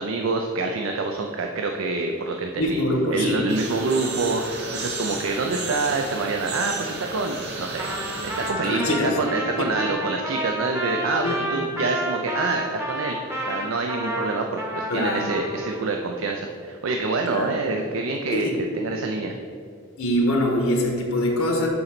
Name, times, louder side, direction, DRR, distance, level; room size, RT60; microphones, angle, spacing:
voice 1, 0.0-2.8 3.1-7.9 8.2-19.4, right 3 dB, 75° right, 3 dB, 0.5 m, -26 dB
voice 2, 2.6-3.4 8.6-9.2 9.6-9.7 11.2-11.4 14.9-15.2 17.3-17.5 18.3-18.6 20.0-21.7, left 1 dB, 85° left, 1 dB, 1.2 m, -23 dB
sound 1, 3.5-8.5, right 3 dB, 50° right, 1.1 m, -33 dB
Trumpet, 7.8-15.8, right 1 dB, 10° right, 0.8 m, -30 dB
6.9 x 3.9 x 5.9 m, 2.3 s
head